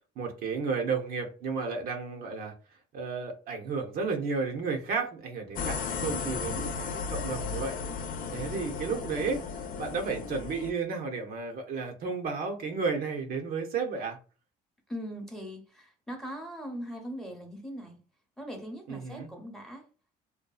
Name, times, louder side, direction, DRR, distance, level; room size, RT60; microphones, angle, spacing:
voice 1, 0.2-2.5 2.9-7.8 8.3-9.4 9.8-14.2 18.9-19.3, right 5 dB, 60° right, 0.6 m, -32 dB
sound 1, 5.5-10.7, left 5 dB, 55° left, 0.4 m, -35 dB
voice 2, 14.9-18.0 18.4-19.8, equal, ahead, 0.7 m, -40 dB
2.6 x 2.2 x 2.3 m
cardioid pair, 110°, 17 cm